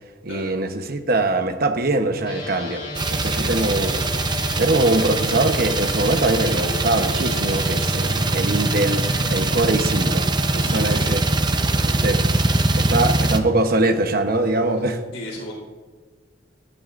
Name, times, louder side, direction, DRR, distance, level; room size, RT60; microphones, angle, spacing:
voice 1, 0.2-2.8 3.1-4.0 4.6-10.3 10.5-11.2 11.8-12.2 12.7-15.0, right 2 dB, 55° right, 7 dB, 1.0 m, -22 dB
sound 1, 2.2-11.6, left 5 dB, 30° left, 3.5 m, -36 dB
sound 2, 3.0-13.4, right 2 dB, 25° right, 0.6 m, -22 dB
voice 2, 3.2-3.8 10.6-11.2 11.5-11.9 12.3-12.6 15.1-15.5, left 1 dB, 85° left, -3 dB, 3.6 m, -36 dB
17.5 x 12.5 x 2.6 m, 1.4 s
head